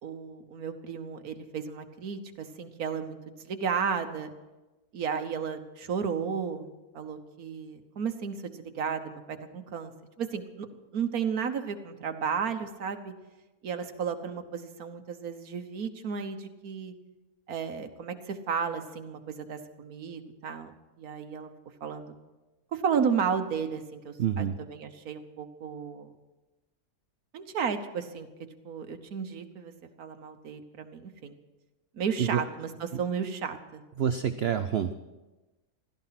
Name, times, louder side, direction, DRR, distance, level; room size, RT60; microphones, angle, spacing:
voice 1, 0.0-4.3 4.9-6.7 6.9-9.9 10.2-10.7 10.9-13.1 13.6-16.9 17.5-20.7 21.0-21.5 21.8-22.1 22.7-26.1 27.3-28.3 28.6-29.7 30.0-31.3 31.9-33.8, right 6 dB, 75° right, 7 dB, 1.6 m, -33 dB
voice 2, 24.2-24.6 32.2-32.4 34.0-34.9, right 8 dB, 55° right, 10 dB, 0.7 m, -27 dB
16.0 x 13.0 x 5.8 m, 1.1 s
omnidirectional pair, 1.6 m